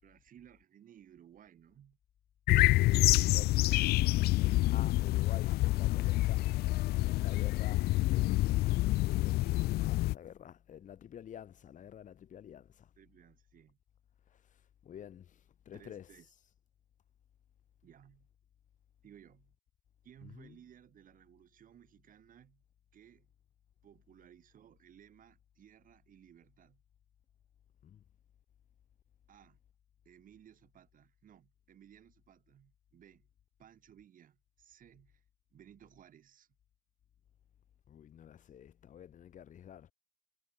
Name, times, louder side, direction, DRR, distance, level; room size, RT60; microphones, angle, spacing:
voice 1, 0.0-2.0 13.0-13.8 15.7-16.3 17.8-18.3 19.0-19.6 20.0-22.6 22.9-23.3 23.8-26.8 29.3-29.6 30.0-33.3 33.6-35.2 35.5-36.5, right 10 dB, 55° right, 4.1 m, -59 dB
sound 1, 2.5-10.1, left 18 dB, 70° left, 0.4 m, -27 dB
voice 2, 3.2-3.8 4.2-6.5 7.0-12.9 14.3-14.4 14.8-15.4 15.6-16.1 20.2-20.5 27.8-28.0 37.9-39.9, left 9 dB, 50° left, 1.4 m, -50 dB
cardioid pair, 110°, 17 cm